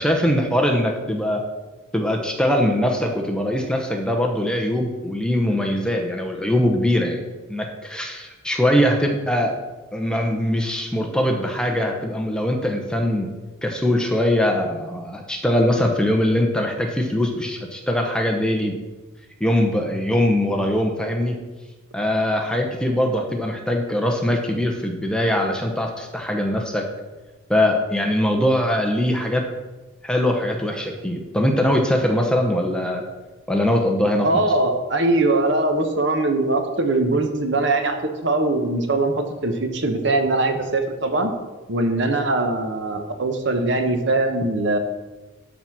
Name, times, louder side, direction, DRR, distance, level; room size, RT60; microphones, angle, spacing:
voice 1, 0.0-1.4 1.9-7.2 7.5-9.5 9.9-13.3 13.6-18.8 19.4-21.4 21.9-26.8 27.5-29.4 30.0-33.0 33.5-34.4, left 1 dB, 5° left, 2 dB, 0.8 m, -22 dB
voice 2, 34.2-39.1 39.4-41.3 41.7-44.8, right 2 dB, 55° right, 5 dB, 1.1 m, -21 dB
11.5 x 4.2 x 6.1 m, 1.2 s
head